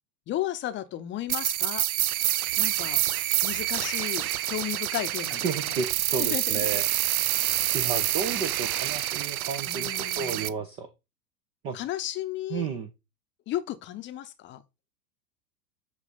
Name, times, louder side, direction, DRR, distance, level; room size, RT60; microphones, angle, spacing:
voice 1, 0.3-1.9 2.6-3.0 3.4-5.8 6.2-6.7 9.7-10.6 11.7-12.7 13.5-14.6, left 13 dB, 25° left, 0.7 m, -34 dB
sound 1, 1.3-10.5, right 13 dB, 60° right, 0.6 m, -27 dB
voice 2, 5.4-6.8 7.7-10.9 11.6-11.8 12.5-12.9, right 5 dB, 15° right, 0.3 m, -32 dB
7.7 x 3.2 x 5.1 m
figure-of-eight pair, 90°, 48 cm